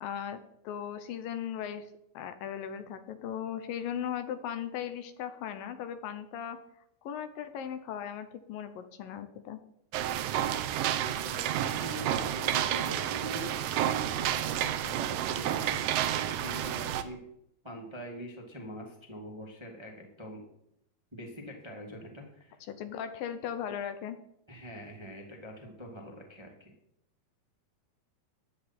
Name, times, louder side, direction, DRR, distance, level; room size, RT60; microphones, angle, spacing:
voice 1, 0.0-6.6 7.0-9.6 22.7-24.2, left 9 dB, 75° left, 9 dB, 2.5 m, -38 dB
sound 1, 9.9-17.0, right 11 dB, 75° right, 2.3 m, -30 dB
voice 2, 11.0-17.2 17.6-20.4 21.1-22.6 24.5-26.7, equal, 10° right, 0 dB, 1.6 m, -43 dB
15.0 x 10.5 x 4.4 m, 0.77 s
omnidirectional pair, 4.3 m